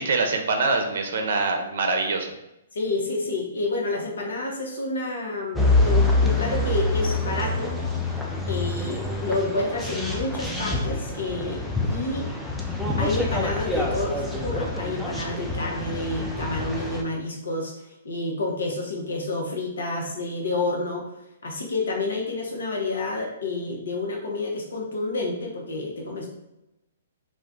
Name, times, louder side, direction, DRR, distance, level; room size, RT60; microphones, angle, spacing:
voice 1, 0.0-2.3, right 3 dB, 60° right, 3 dB, 0.5 m, -24 dB
voice 2, 2.7-7.7 8.5-12.3 13.0-21.1 21.4-26.3, left 2 dB, 70° left, 0 dB, 0.8 m, -29 dB
sound 1, 5.6-17.0, left 2 dB, ahead, 0.4 m, -26 dB
2.4 x 2.3 x 3.7 m, 0.89 s
figure-of-eight pair, 125°, 0 cm